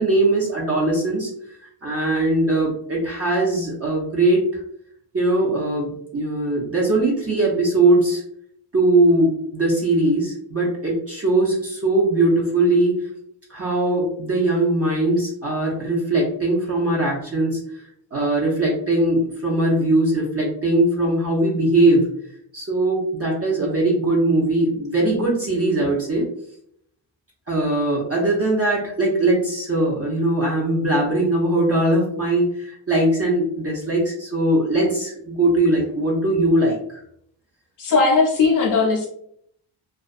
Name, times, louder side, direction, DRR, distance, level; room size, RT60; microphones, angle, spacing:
voice 1, 0.0-4.6 5.1-8.2 8.7-13.1 13.5-17.8 18.1-22.1 22.5-26.3 27.5-37.0, right 2 dB, 30° right, -4 dB, 0.7 m, -20 dB
voice 2, 37.8-39.1, left 4 dB, 45° left, -4 dB, 0.5 m, -18 dB
2.4 x 2.2 x 2.4 m, 0.69 s
cardioid pair, 105°, 49 cm